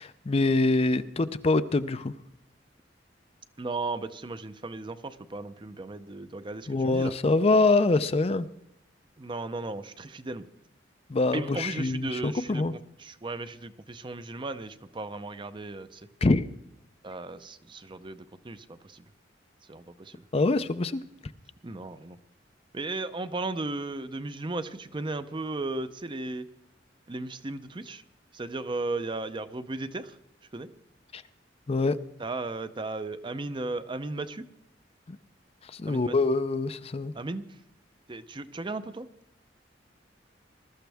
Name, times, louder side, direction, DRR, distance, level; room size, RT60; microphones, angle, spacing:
voice 1, 0.0-2.1 6.7-8.5 11.1-12.7 16.2-16.5 20.3-21.0 31.1-31.2 31.7-32.0 35.1-35.2 35.6-37.1, left 3 dB, 35° left, 13 dB, 0.5 m, -25 dB
voice 2, 3.6-7.1 9.2-10.5 11.3-12.6 13.0-16.0 17.0-19.0 19.7-20.2 21.6-22.2 22.7-26.5 27.1-28.0 28.3-30.2 30.5-30.7 32.2-34.5 35.9-36.2 37.1-37.5 38.1-39.1, right 2 dB, 25° right, 12 dB, 0.6 m, -35 dB
21.0 x 13.0 x 3.5 m, 0.83 s
head